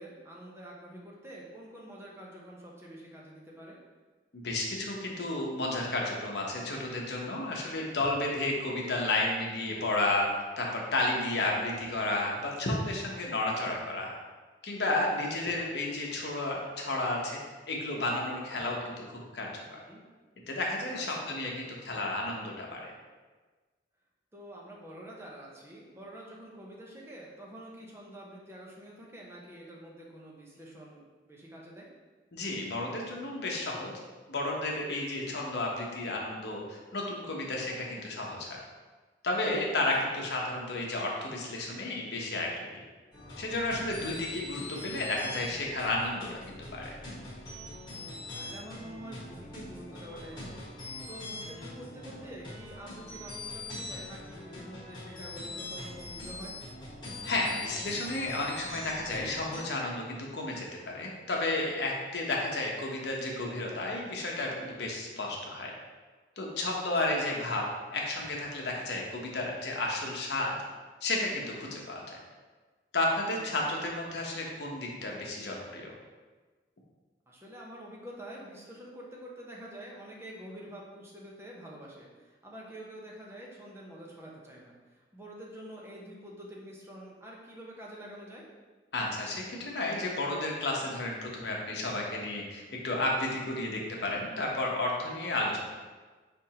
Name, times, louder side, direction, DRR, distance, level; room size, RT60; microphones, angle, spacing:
voice 1, 0.0-3.8 19.7-20.0 20.9-21.4 24.3-31.9 40.2-40.4 43.8-44.2 48.4-50.7 51.1-56.6 66.9-67.3 73.3-73.4 77.3-88.4, right 1 dB, 15° right, -3 dB, 0.7 m, -47 dB
voice 2, 4.3-10.3 10.6-14.1 14.6-17.4 17.7-19.6 20.5-22.9 32.3-33.9 34.3-38.6 39.2-42.8 43.4-47.0 57.2-65.7 66.4-67.7 67.9-70.6 71.0-72.2 72.9-75.9 88.9-95.6, left 2 dB, 70° left, -1 dB, 0.9 m, -32 dB
sound 1, 43.1-59.6, left 2 dB, 25° left, 1.3 m, -43 dB
5.1 x 3.4 x 2.9 m, 1.3 s
head